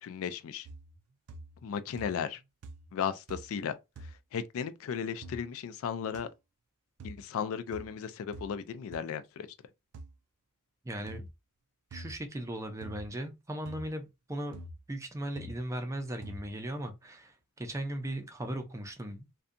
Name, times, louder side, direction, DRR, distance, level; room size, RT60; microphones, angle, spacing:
voice 1, 0.0-0.7 1.6-2.4 2.9-6.3 7.0-9.5, left 7 dB, 65° left, 0.3 m, -35 dB
sound 1, 0.7-1.0 1.3-1.7 2.0-2.4 2.6-3.0 3.3-3.6 4.0-4.2 5.2-5.4 6.1-6.2 7.0-7.2 7.7-7.9 8.3-8.5 8.9-9.0 9.9-10.1 11.1-11.3 11.9-12.2 12.8-13.1 13.7-13.9 14.5-14.8 15.4-15.6 16.2-16.5, right 1 dB, 90° right, 0.4 m, -46 dB
voice 2, 10.8-11.3 11.9-14.6 14.9-19.3, right 1 dB, 15° right, 0.4 m, -38 dB
2.6 x 2.2 x 2.5 m
head